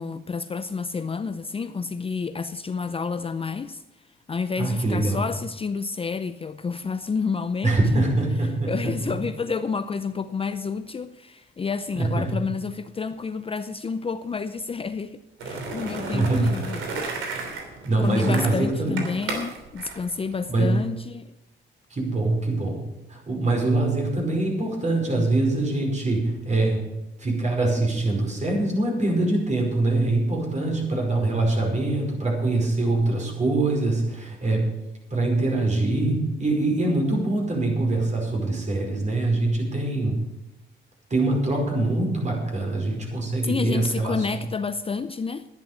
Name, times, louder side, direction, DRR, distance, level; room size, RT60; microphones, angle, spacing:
voice 1, 0.0-3.8 4.3-8.0 8.7-16.8 18.0-21.3 43.4-45.5, left 5 dB, 30° left, 0.6 m, -29 dB
voice 2, 4.6-5.2 7.6-9.1 11.9-12.3 16.1-16.6 17.8-19.0 20.5-20.8 21.9-22.8 23.1-26.8 27.2-34.7 35.1-40.2 41.1-44.1, right 2 dB, 35° right, 5.1 m, -24 dB
Skateboard, 15.4-20.9, right 3 dB, 80° right, 3.1 m, -34 dB
11.0 x 10.5 x 6.8 m
cardioid pair, 90°, 20 cm